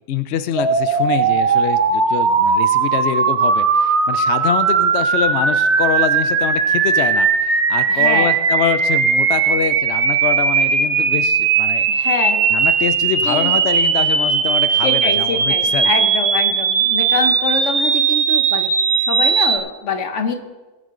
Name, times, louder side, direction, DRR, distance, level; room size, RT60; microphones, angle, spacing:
voice 1, 0.1-11.9 12.5-15.9, left 10 dB, 70° left, 11 dB, 0.6 m, -24 dB
sound 1, 0.6-19.6, right 6 dB, 55° right, 1.0 m, -17 dB
voice 2, 7.9-8.3 11.9-12.5 13.2-13.6 14.8-18.7 19.1-20.3, left 4 dB, 50° left, 6 dB, 1.3 m, -24 dB
19.5 x 7.7 x 3.8 m, 1.2 s
omnidirectional pair, 1.7 m